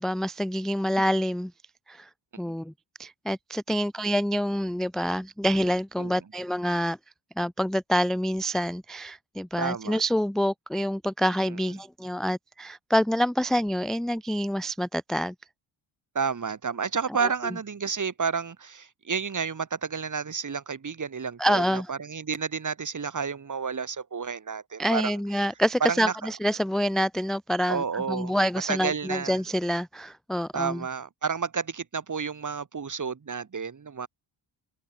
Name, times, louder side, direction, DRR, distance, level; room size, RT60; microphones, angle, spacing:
voice 1, 0.0-1.5 1.9-2.1 2.4-2.7 3.0-7.0 7.4-15.3 21.4-21.9 24.8-30.8, equal, ahead, 0.5 m, -27 dB
voice 2, 9.6-10.0 16.1-25.1 25.9-26.1 27.7-28.3 28.7-29.4 30.5-34.1, right 6 dB, 40° right, 2.4 m, -31 dB
open air
cardioid pair, 85°, 48 cm